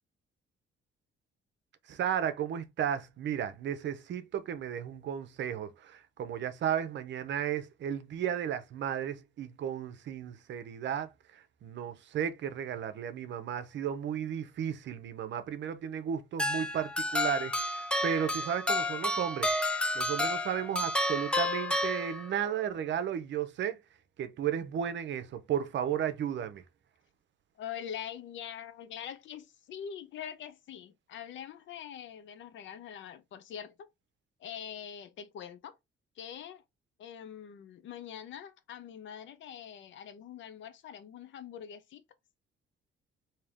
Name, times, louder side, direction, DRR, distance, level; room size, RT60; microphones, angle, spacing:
voice 1, 1.9-19.5 19.9-23.8 24.2-26.6, right 9 dB, 65° right, 0.7 m, -34 dB
sound 1, 16.4-22.5, left 1 dB, 5° left, 0.6 m, -31 dB
voice 2, 27.6-33.9 34.4-35.8 36.2-36.6 37.0-42.0, left 9 dB, 75° left, 0.7 m, -44 dB
3.3 x 2.8 x 3.5 m
cardioid pair, 90°, 20 cm